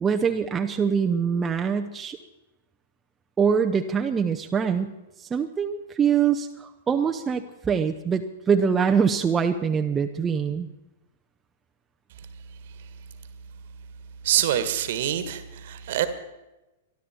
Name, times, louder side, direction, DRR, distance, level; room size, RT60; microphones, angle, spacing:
voice 1, 0.0-2.2 3.4-4.9 5.2-10.7, right 6 dB, 15° right, 4 dB, 0.8 m, -24 dB
voice 2, 14.2-16.1, right 11 dB, 50° right, 12 dB, 1.6 m, -25 dB
23.0 x 12.5 x 4.4 m, 1.0 s
figure-of-eight pair, 105°, 0 cm